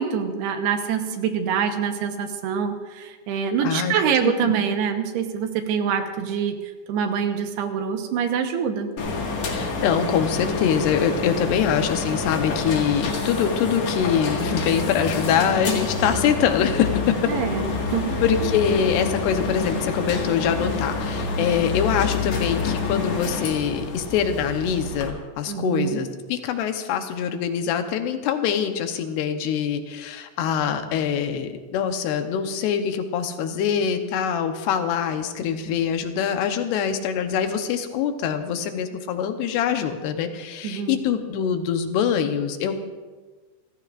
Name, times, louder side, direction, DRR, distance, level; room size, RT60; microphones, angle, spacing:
voice 1, 0.0-6.5 6.9-8.9 17.3-18.6 25.5-26.0 40.6-41.0, right 7 dB, 80° right, 5 dB, 3.2 m, -25 dB
voice 2, 3.6-4.5 9.5-17.2 18.2-42.7, left 8 dB, 85° left, 7 dB, 3.1 m, -24 dB
sound 1, 9.0-25.1, left 4 dB, 50° left, 2.8 m, -27 dB
30.0 x 15.0 x 2.6 m, 1.4 s
omnidirectional pair, 4.6 m